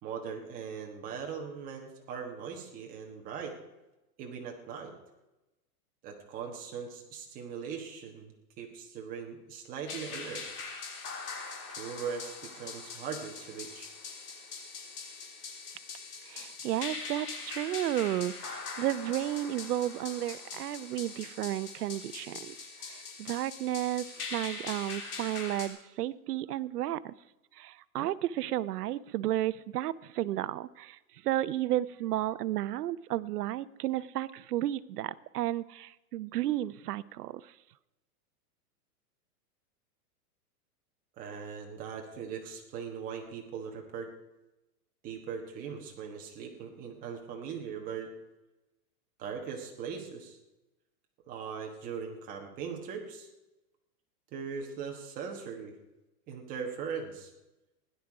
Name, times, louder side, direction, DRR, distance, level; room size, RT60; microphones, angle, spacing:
voice 1, 0.0-3.6 4.2-4.9 6.0-10.4 11.7-13.9 41.2-44.1 45.0-48.1 49.2-50.4 51.3-53.3 54.3-55.7 56.3-57.3, right 6 dB, 20° right, 2 dB, 1.3 m, -40 dB
sound 1, 9.9-25.7, left 4 dB, 75° left, 3.4 m, -42 dB
voice 2, 16.3-22.5 22.8-27.1 27.6-31.0 31.2-37.4, right 13 dB, 75° right, 18 dB, 0.7 m, -33 dB
16.0 x 11.0 x 4.8 m, 1.0 s
supercardioid pair, 170°, 47 cm